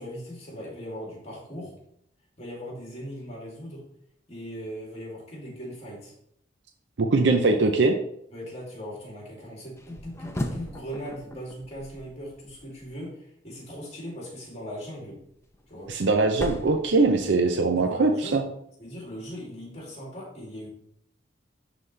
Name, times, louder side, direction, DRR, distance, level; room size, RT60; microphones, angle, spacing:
voice 1, 0.0-1.7 2.4-3.8 4.3-6.1 7.1-7.3 8.3-15.2 15.7-15.9 17.8-18.4 18.8-20.7, equal, 35° left, -3 dB, 2.5 m, -39 dB
voice 2, 7.0-7.9 15.9-18.4, right 3 dB, 70° right, 5 dB, 0.5 m, -21 dB
sound 1, 9.8-12.9 15.1-17.7, left 1 dB, 15° left, 0.6 m, -38 dB
11.0 x 4.1 x 3.2 m, 0.73 s
head